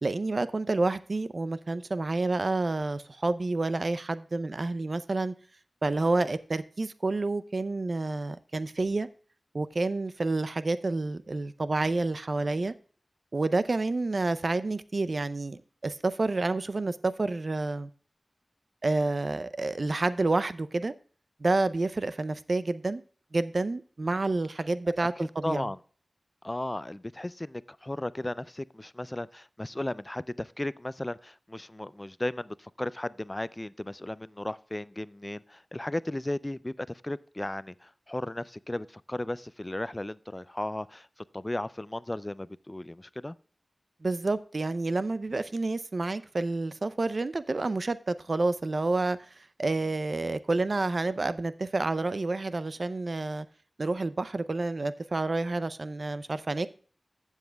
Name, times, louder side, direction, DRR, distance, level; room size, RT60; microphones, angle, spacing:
voice 1, 0.0-5.3 5.8-9.1 9.5-12.7 13.3-17.9 18.8-20.9 21.4-23.0 23.3-25.7 44.0-49.2 49.6-53.5 53.8-56.7, right 2 dB, 60° right, 0.5 m, -29 dB
voice 2, 25.4-25.8 26.4-41.1 41.3-43.3, left 1 dB, 25° left, 0.3 m, -35 dB
14.5 x 7.3 x 2.3 m
wide cardioid pair, 50°, 0 cm